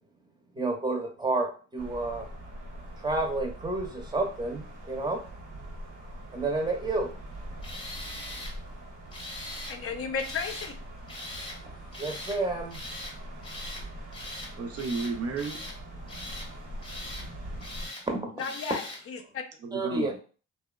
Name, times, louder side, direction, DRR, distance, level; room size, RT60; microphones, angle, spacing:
voice 1, 0.5-2.3 3.0-5.2 6.3-7.1 12.0-12.8 18.0-18.3 18.7-18.8 19.7-20.1, right 2 dB, 15° right, 2 dB, 0.6 m, -30 dB
sound 1, 1.8-17.9, right 1 dB, 80° right, 1.0 m, -43 dB
Tools, 7.6-8.5 9.1-9.8 10.2-10.7 11.1-11.6 11.9-12.4 12.7-13.2 13.4-13.8 14.1-14.5 14.8-15.8 16.1-16.5 16.8-17.3 17.6-18.0 18.4-19.0, left 1 dB, 15° left, 0.8 m, -41 dB
voice 2, 9.7-10.8 18.4-19.4, left 5 dB, 50° left, 5 dB, 0.4 m, -34 dB
voice 3, 14.6-15.6 19.6-20.1, right 4 dB, 55° right, 3 dB, 0.5 m, -32 dB
2.8 x 2.0 x 2.3 m, 0.38 s
cardioid pair, 90°, 30 cm